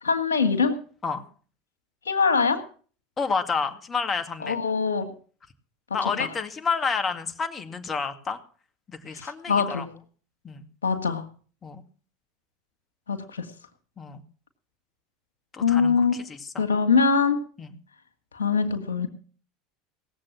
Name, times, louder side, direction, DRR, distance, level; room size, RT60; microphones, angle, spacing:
voice 1, 0.0-0.8 2.1-2.6 4.4-5.1 6.2-6.3 9.1-9.9 10.8-11.2 13.1-13.5 15.6-16.2 16.6-17.4 18.3-19.1, left 5 dB, 85° left, 6 dB, 2.2 m, -23 dB
voice 2, 3.2-4.6 5.9-8.4 8.9-9.9 10.4-10.6 11.6-11.8 14.0-14.2 15.5-16.6 17.6-17.8, left 5 dB, 30° left, 7 dB, 2.2 m, -30 dB
18.5 x 7.7 x 7.5 m, 0.42 s
hypercardioid pair, 80°, 0 cm